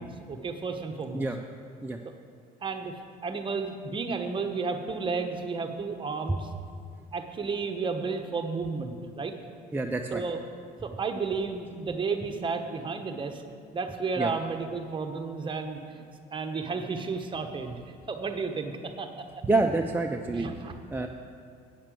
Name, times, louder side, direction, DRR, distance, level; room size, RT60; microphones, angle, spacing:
voice 1, 0.0-1.3 2.6-6.5 7.1-9.4 10.1-10.4 10.8-13.4 13.7-16.0 16.3-19.1 20.3-20.7, right 4 dB, 30° right, 5 dB, 1.0 m, -32 dB
voice 2, 9.7-10.2 14.2-14.3 19.5-20.5 20.9-21.1, right 2 dB, 10° right, 2 dB, 0.5 m, -27 dB
9.0 x 6.6 x 7.5 m, 2.2 s
cardioid pair, 110°, 17 cm